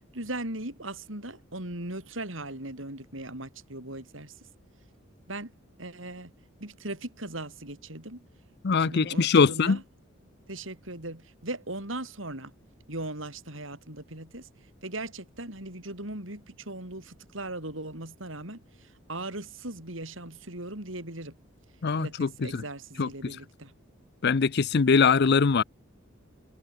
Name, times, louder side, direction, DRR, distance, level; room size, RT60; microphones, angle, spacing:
voice 1, 0.1-4.3 5.3-5.5 5.8-6.3 6.6-8.2 8.8-9.8 10.5-12.5 12.9-14.5 14.8-21.4 22.0-23.7, right 2 dB, 70° right, 7.8 m, -38 dB
voice 2, 8.6-9.8 21.8-22.6 23.0-23.1 24.2-25.6, left 5 dB, 55° left, 0.6 m, -22 dB
head